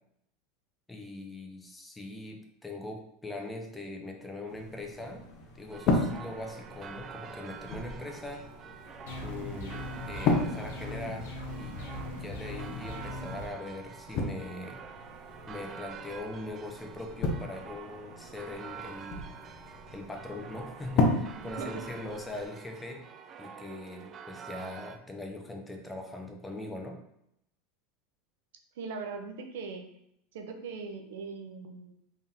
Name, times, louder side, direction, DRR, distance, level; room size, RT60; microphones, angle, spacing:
voice 1, 0.9-5.2 5.6-8.5 9.2-11.3 11.6-14.8 15.5-19.3 19.9-23.0 23.4-27.0, left 2 dB, 10° left, 3 dB, 0.6 m, -41 dB
sound 1, 4.5-22.5, left 3 dB, 50° left, 0.7 m, -35 dB
sound 2, 5.7-25.0, right 7 dB, 35° right, 0.4 m, -47 dB
sound 3, 9.1-13.5, left 2 dB, 70° left, 1.0 m, -39 dB
voice 2, 21.3-21.8 28.7-29.8 30.3-31.9, right 4 dB, 80° right, 4 dB, 0.6 m, -40 dB
3.6 x 3.5 x 2.8 m, 0.77 s
supercardioid pair, 120°, 0 cm